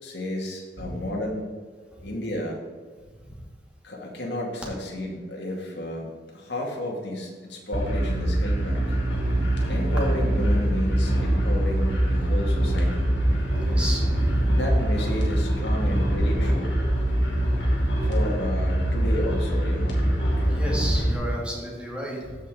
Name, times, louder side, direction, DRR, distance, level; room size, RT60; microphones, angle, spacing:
voice 1, 0.0-1.5 2.0-2.6 3.8-9.0 9.7-13.0 14.5-16.8 18.0-20.1, left 1 dB, 75° left, -2 dB, 2.4 m, -32 dB
sound 1, 7.7-21.2, right 1 dB, 90° left, 3.0 m, -23 dB
voice 2, 13.6-14.4 15.8-15.9 20.5-22.5, equal, 5° right, -4 dB, 2.5 m, -32 dB
15.0 x 5.2 x 3.9 m, 1.6 s
head